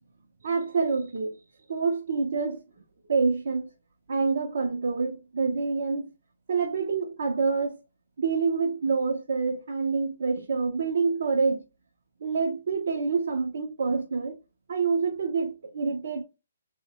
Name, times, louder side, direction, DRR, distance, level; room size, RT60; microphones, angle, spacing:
voice 1, 0.4-1.4 1.7-2.6 3.1-3.7 4.1-6.1 6.5-7.8 8.2-11.6 12.2-14.4 14.7-16.2, right 4 dB, 55° right, 0.6 m, -27 dB
2.9 x 2.1 x 2.8 m
hypercardioid pair, 170°, 0 cm